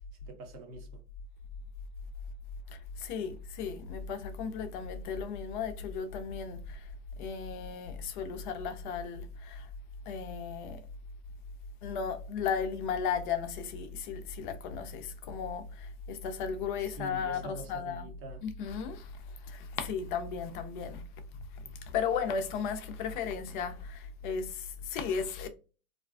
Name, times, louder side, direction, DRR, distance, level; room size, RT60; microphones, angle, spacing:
voice 1, 0.2-1.0 16.8-18.4, right 1 dB, 30° right, 0.7 m, -45 dB
voice 2, 3.0-6.8 7.2-9.6 10.1-10.8 11.8-18.1 18.4-19.1 19.5-21.0 21.9-25.5, left 6 dB, 40° left, 0.4 m, -35 dB
2.4 x 2.3 x 2.2 m
hypercardioid pair, 115°, 42 cm